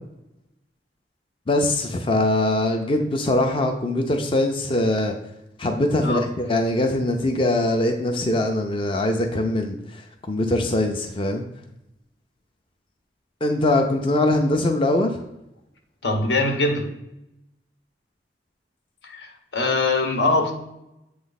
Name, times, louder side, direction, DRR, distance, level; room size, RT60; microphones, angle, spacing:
voice 1, 1.5-5.1 5.6-11.4 13.4-15.1, left 1 dB, 30° left, 0.5 m, -22 dB
voice 2, 16.0-16.9 19.0-20.5, left 2 dB, 80° left, 1.0 m, -22 dB
7.7 x 3.2 x 4.0 m
head